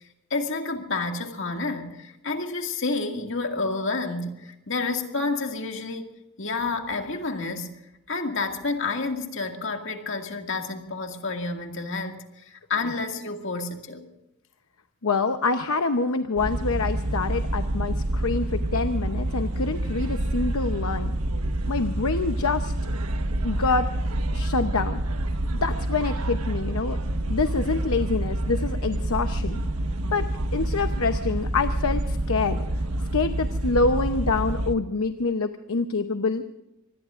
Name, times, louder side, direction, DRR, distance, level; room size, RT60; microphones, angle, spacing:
voice 1, 0.3-6.1 6.4-7.7 8.1-14.1, left 3 dB, 55° left, 2.1 m, -29 dB
voice 2, 15.0-21.2 21.7-22.7 23.4-23.9 24.3-25.0 25.6-27.0 27.3-29.6 30.1-32.6 33.1-36.4, left 3 dB, 75° left, 0.8 m, -26 dB
sound 1, 16.4-34.7, right 1 dB, 90° right, 1.3 m, -27 dB
25.5 x 21.0 x 2.5 m
head